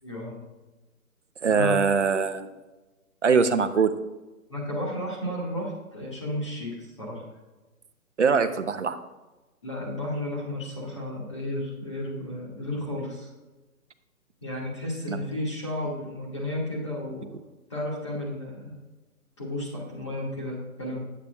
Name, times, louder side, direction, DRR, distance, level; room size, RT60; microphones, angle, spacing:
voice 1, 0.0-0.4 1.5-1.8 4.5-7.2 9.6-13.3 14.4-17.3 17.7-18.7 19.4-21.0, left 1 dB, 20° left, -4 dB, 1.4 m, -33 dB
voice 2, 1.4-2.5 3.2-3.9 8.2-9.0 15.1-15.3, right 5 dB, 55° right, 10 dB, 0.6 m, -22 dB
10.0 x 8.3 x 2.3 m, 1.1 s
hypercardioid pair, 180°, 44 cm